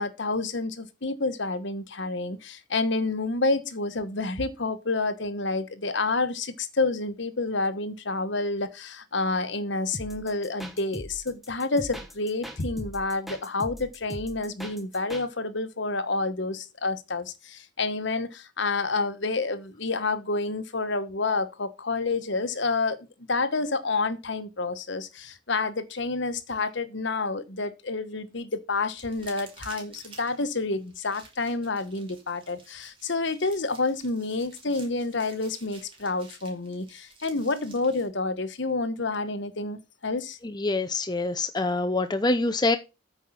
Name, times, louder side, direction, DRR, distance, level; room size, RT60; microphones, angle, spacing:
voice 1, 0.0-23.0 23.3-40.4, left 3 dB, 60° left, 1.1 m, -29 dB
sound 1, 9.9-15.3, equal, ahead, 1.3 m, -40 dB
sound 2, 28.9-38.1, right 4 dB, 25° right, 2.7 m, -51 dB
voice 2, 40.4-42.8, left 2 dB, 20° left, 0.6 m, -25 dB
8.8 x 5.4 x 5.8 m
head